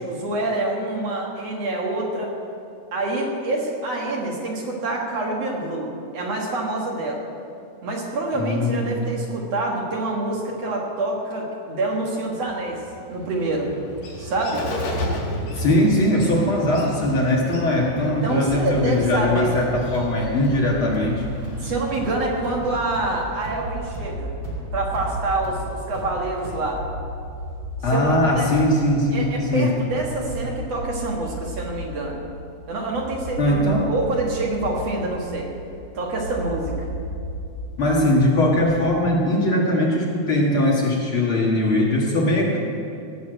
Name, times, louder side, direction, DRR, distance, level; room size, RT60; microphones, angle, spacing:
voice 1, 0.0-2.3 2.9-7.2 7.8-12.8 13.1-13.7 14.2-14.7 18.0-19.5 21.6-24.3 24.7-26.8 27.9-28.5 29.1-32.2 32.7-33.6 33.9-35.5 35.9-36.9, right 2 dB, 55° right, -1 dB, 2.6 m, -26 dB
voice 2, 8.3-9.0 15.5-21.2 27.8-29.8 33.4-33.9 37.8-42.6, left 1 dB, 45° left, -3 dB, 2.2 m, -20 dB
Bird, 12.5-24.0, left 1 dB, 80° left, 4.0 m, -34 dB
sound 1, 18.4-26.9, right 1 dB, 10° right, 2.4 m, -37 dB
sound 2, 23.5-39.0, equal, 85° right, 2.8 m, -35 dB
18.0 x 7.0 x 7.8 m, 2.6 s
omnidirectional pair, 3.6 m